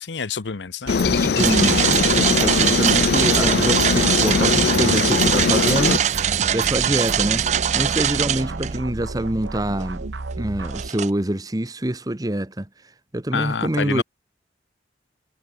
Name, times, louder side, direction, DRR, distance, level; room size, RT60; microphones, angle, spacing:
voice 1, 0.0-1.0 13.3-14.0, left 5 dB, 75° left, 0.7 m, -27 dB
Aircraft, 0.9-6.0, left 5 dB, 55° left, 0.4 m, -21 dB
sound 1, 0.9-10.9, right 3 dB, 85° right, 1.0 m, -33 dB
voice 2, 1.0-7.4 7.7-10.1 10.4-12.7 13.1-14.0, right 1 dB, 20° right, 1.0 m, -25 dB
sound 2, 1.4-8.8 9.4-9.5 10.6-11.1, right 9 dB, 40° right, 0.4 m, -22 dB
head